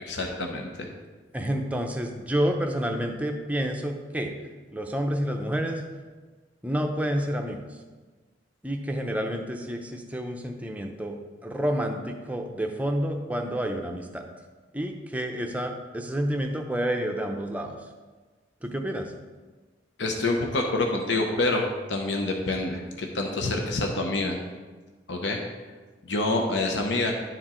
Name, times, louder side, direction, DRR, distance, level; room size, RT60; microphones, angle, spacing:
voice 1, 0.1-0.9 20.0-24.4 25.1-25.4 26.0-27.1, left 2 dB, 70° left, 2 dB, 0.8 m, -27 dB
voice 2, 1.3-4.3 4.7-5.8 6.6-7.6 8.6-11.2 11.4-14.2 14.7-17.8 18.6-19.1, equal, 10° right, 3 dB, 0.6 m, -29 dB
10.5 x 4.6 x 3.8 m, 1.3 s
head